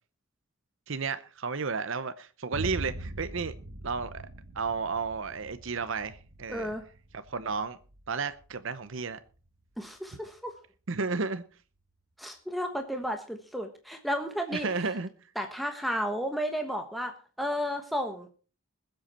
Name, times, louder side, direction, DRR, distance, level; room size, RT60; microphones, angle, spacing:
voice 1, 0.9-3.5 3.8-4.2 4.6-6.7 7.1-7.8 8.1-9.2 10.9-11.4 14.5-15.1, right 4 dB, 65° right, 0.7 m, -32 dB
Boom, 2.5-10.4, right 2 dB, 85° right, 1.5 m, -43 dB
voice 2, 6.5-6.8 9.8-10.5 12.2-14.7 15.3-18.3, equal, ahead, 1.2 m, -33 dB
21.0 x 7.9 x 4.3 m
head